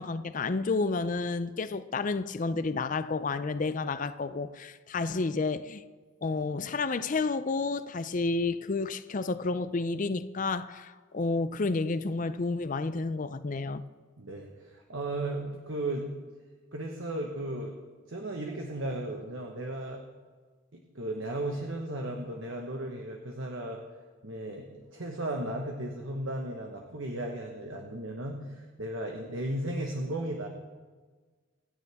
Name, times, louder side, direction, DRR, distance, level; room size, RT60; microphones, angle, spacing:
voice 1, 0.0-5.8 6.2-13.8, left 3 dB, 35° left, 0.4 m, -30 dB
voice 2, 14.2-16.1 16.7-17.8 18.1-20.0 20.7-23.8 24.2-30.5, right 1 dB, 65° right, 1.3 m, -35 dB
26.5 x 9.6 x 3.6 m
head